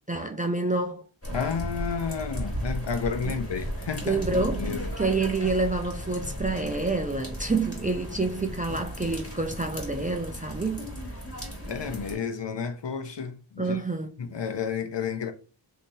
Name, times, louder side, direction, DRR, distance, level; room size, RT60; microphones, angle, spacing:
voice 1, 0.1-1.0 3.2-3.4 4.0-10.9 13.6-14.2, right 3 dB, 20° right, 0.4 m, -28 dB
sound 1, 1.2-12.2, equal, 30° left, 1.3 m, -35 dB
voice 2, 1.3-4.9 11.7-13.8 14.2-15.3, left 6 dB, 60° left, 0.7 m, -31 dB
3.3 x 2.8 x 2.7 m
wide cardioid pair, 65°, 48 cm